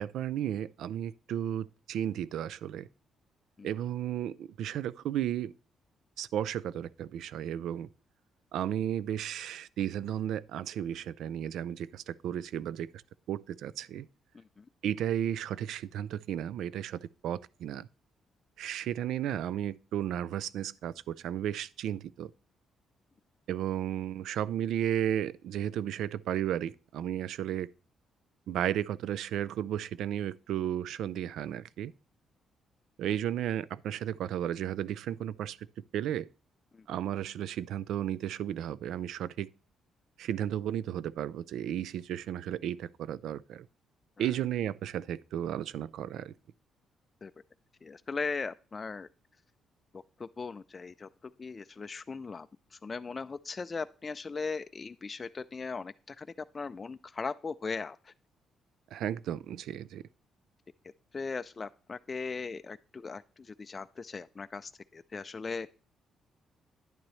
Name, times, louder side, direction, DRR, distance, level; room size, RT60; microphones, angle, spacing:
voice 1, 0.0-2.9 3.6-5.5 6.2-7.9 8.5-12.9 13.3-14.1 14.8-17.9 18.6-22.3 23.5-27.7 28.5-31.9 33.0-35.7 35.9-36.3 36.9-39.5 40.2-43.7 44.2-46.3 58.9-60.0, right 10 dB, 80° right, 0.3 m, -34 dB
voice 2, 47.8-49.1 50.2-51.1 51.4-52.5 52.8-56.3 56.5-58.1 61.1-65.7, left 4 dB, 30° left, 0.3 m, -38 dB
10.5 x 8.9 x 3.1 m
cardioid pair, 90°, 0 cm